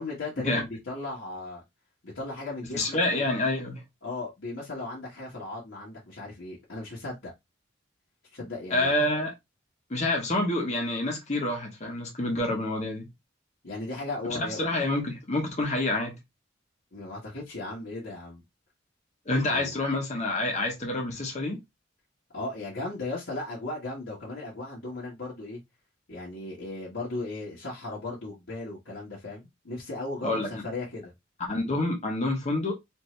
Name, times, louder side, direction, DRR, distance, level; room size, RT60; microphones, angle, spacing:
voice 1, 0.0-1.6 2.0-3.3 4.0-7.3 8.3-8.9 13.6-14.6 16.9-18.4 19.5-19.7 22.3-25.6 26.1-31.1, left 2 dB, 70° left, 1.5 m, -36 dB
voice 2, 2.8-3.8 8.7-9.3 9.9-13.1 14.3-16.2 19.3-21.6 30.2-30.5 31.5-32.7, left 2 dB, 35° left, 1.0 m, -27 dB
4.4 x 2.8 x 3.2 m
head